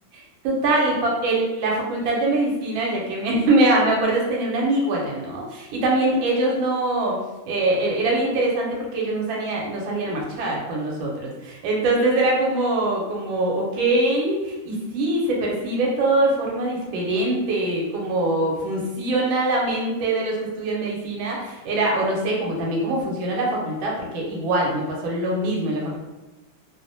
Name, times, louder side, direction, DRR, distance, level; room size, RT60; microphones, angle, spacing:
voice 1, 0.1-7.2 7.5-26.0, right 2 dB, 85° right, -2 dB, 1.4 m, -23 dB
3.2 x 2.0 x 2.6 m, 1.1 s
omnidirectional pair, 2.1 m